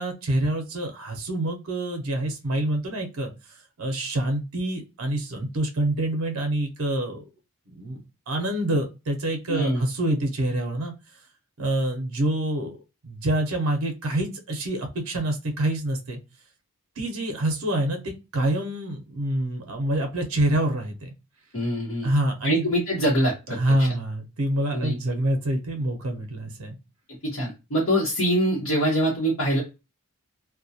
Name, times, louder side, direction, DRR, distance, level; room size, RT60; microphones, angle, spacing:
voice 1, 0.0-3.3 3.8-7.2 7.7-10.9 11.6-12.8 13.0-16.2 17.0-21.1 22.0-22.7 23.6-26.8, right 1 dB, 65° right, 4 dB, 0.6 m, -26 dB
voice 2, 9.5-9.8 21.5-22.1 22.4-23.6 24.7-25.0 27.3-29.6, right 1 dB, 60° left, -6 dB, 0.9 m, -24 dB
2.2 x 2.2 x 2.6 m, 0.27 s
head